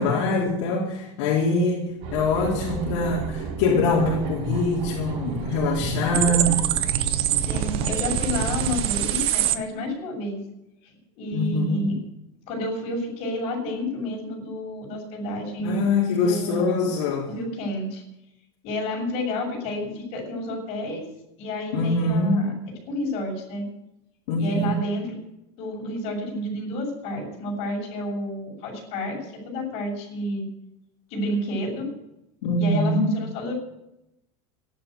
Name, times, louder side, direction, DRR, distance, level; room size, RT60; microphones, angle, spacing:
voice 1, 0.0-6.6 11.3-11.9 15.6-17.3 21.7-22.4 24.3-24.7 32.4-33.1, left 2 dB, 75° left, -3 dB, 4.0 m, -23 dB
sound 1, 2.0-8.8, right 5 dB, 70° right, 5.6 m, -32 dB
sound 2, 6.1-9.6, right 12 dB, 40° right, 0.8 m, -24 dB
voice 2, 7.4-10.4 10.8-12.0 12.5-15.8 16.2-16.9 17.3-18.0 18.6-21.1 21.4-22.5 22.9-23.6 24.4-25.2 25.6-30.4 31.1-31.9 32.6-33.5, left 1 dB, 45° left, 0 dB, 6.9 m, -30 dB
14.0 x 11.5 x 7.8 m, 0.86 s
cardioid pair, 175°, 15 cm